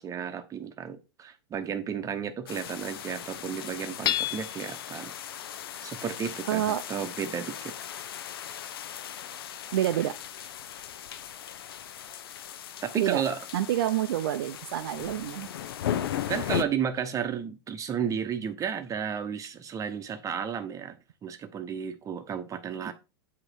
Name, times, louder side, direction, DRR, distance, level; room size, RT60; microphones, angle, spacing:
voice 1, 0.0-5.1 5.8-7.7 12.8-13.4 16.3-22.9, right 7 dB, 25° right, 1.0 m, -33 dB
sound 1, 2.5-16.6, left 10 dB, 70° left, 0.6 m, -37 dB
Hammer / Chink clink, 4.1-4.9, left 13 dB, 30° left, 0.3 m, -29 dB
voice 2, 6.5-6.8 9.7-10.1 13.0-13.2 13.5-15.5, right 12 dB, 65° right, 0.5 m, -27 dB
7.7 x 3.1 x 4.5 m
hypercardioid pair, 95°, 13 cm